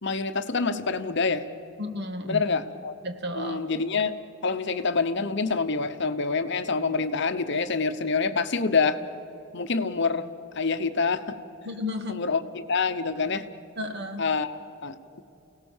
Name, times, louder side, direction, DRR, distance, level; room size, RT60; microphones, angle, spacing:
voice 1, 0.0-1.4 2.2-3.0 3.3-4.2 4.4-9.0 9.5-10.3 10.5-11.3 12.1-13.5 14.2-15.2, left 4 dB, 55° left, 10 dB, 1.0 m, -26 dB
voice 2, 1.8-2.4 3.0-3.6 11.6-12.2 13.8-14.3, left 1 dB, 50° right, 6 dB, 1.7 m, -33 dB
29.5 x 18.0 x 7.3 m, 2.8 s
head